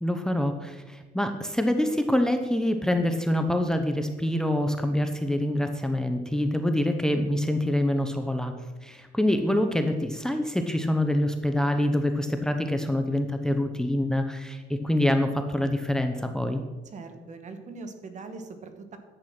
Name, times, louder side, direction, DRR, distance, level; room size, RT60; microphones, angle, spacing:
voice 1, 0.0-8.5 8.8-16.6, left 1 dB, 5° left, 6 dB, 0.8 m, -26 dB
voice 2, 16.8-19.0, right 3 dB, 45° right, 8 dB, 1.5 m, -41 dB
10.5 x 8.2 x 6.0 m, 1.2 s
cardioid pair, 110°, 17 cm